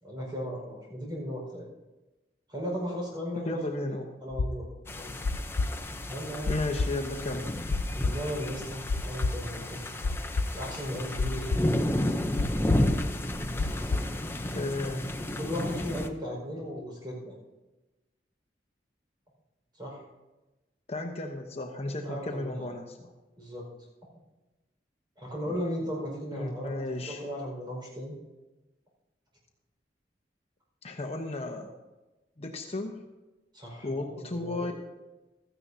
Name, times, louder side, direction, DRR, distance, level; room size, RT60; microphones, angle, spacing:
voice 1, 0.0-1.7 2.5-4.0 4.2-5.1 6.1-6.6 7.9-9.9 10.5-11.9 15.4-17.3 19.8-20.0 22.0-22.6 23.4-23.6 25.2-28.1 33.5-34.7, equal, 25° right, -2 dB, 5.1 m, -36 dB
voice 2, 3.4-4.1 6.5-7.5 14.5-15.0 20.9-23.1 25.5-25.6 26.3-27.2 30.8-31.7 32.4-33.0 33.8-34.7, left 2 dB, 35° left, 2 dB, 1.0 m, -34 dB
sound 1, 4.3-12.9 13.2-14.8, left 3 dB, 80° left, 0.5 m, -30 dB
sound 2, 4.9-16.1, left 1 dB, 15° left, 0.7 m, -32 dB
16.0 x 14.0 x 2.8 m, 1.1 s
head